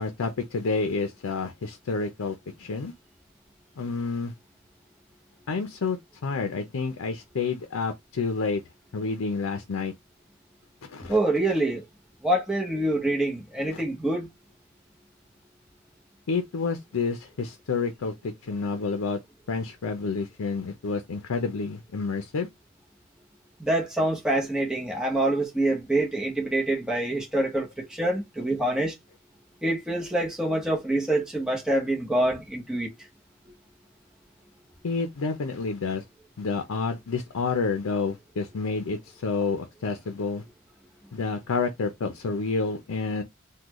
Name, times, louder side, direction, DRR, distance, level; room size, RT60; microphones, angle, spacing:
voice 1, 0.0-2.9 3.8-4.3 5.5-6.0 6.2-8.6 8.9-9.9 10.8-11.2 13.7-13.8 16.3-19.2 19.5-22.5 34.8-36.0 36.4-40.4 41.1-43.2, left 4 dB, 85° left, 0.5 m, -29 dB
voice 2, 11.1-11.8 12.2-14.3 23.6-28.9 29.6-32.9, right 1 dB, 5° right, 0.7 m, -26 dB
3.8 x 2.2 x 3.0 m
head